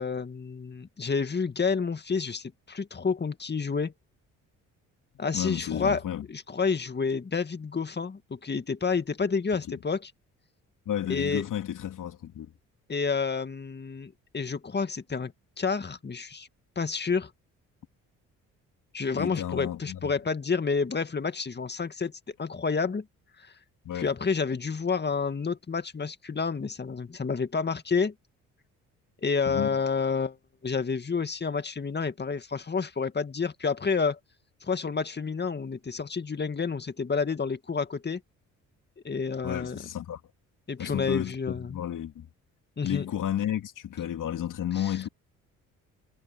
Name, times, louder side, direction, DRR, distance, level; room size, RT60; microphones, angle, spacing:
voice 1, 0.0-3.9 5.2-6.0 6.3-10.1 11.1-11.4 12.9-15.3 15.6-16.5 16.8-17.3 18.9-22.1 22.4-23.1 23.4-23.5 24.0-28.1 29.2-30.4 30.6-34.2 34.6-38.2 39.0-39.8 40.7-41.8 42.8-43.0 44.8-44.9, left 5 dB, 30° left, 2.1 m, -29 dB
voice 2, 5.3-6.3 10.9-12.5 19.1-20.1 23.8-24.1 29.4-29.8 39.4-40.2 40.8-42.3 42.8-45.1, left 10 dB, 65° left, 2.9 m, -32 dB
supercardioid pair, 60°, 34 cm